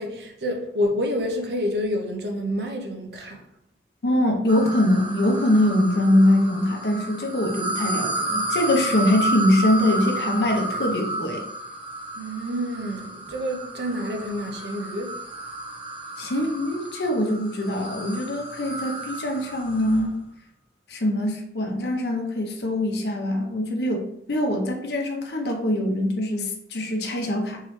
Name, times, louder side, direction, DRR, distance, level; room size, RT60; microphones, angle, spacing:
voice 1, 0.0-3.4 12.2-15.2, equal, 70° right, 0.7 m, -28 dB
voice 2, 4.0-11.4 16.2-20.2 20.9-27.6, left 1 dB, 70° left, 0.7 m, -23 dB
sound 1, 4.5-20.1, right 1 dB, 30° right, 0.7 m, -32 dB
3.7 x 3.1 x 3.0 m
head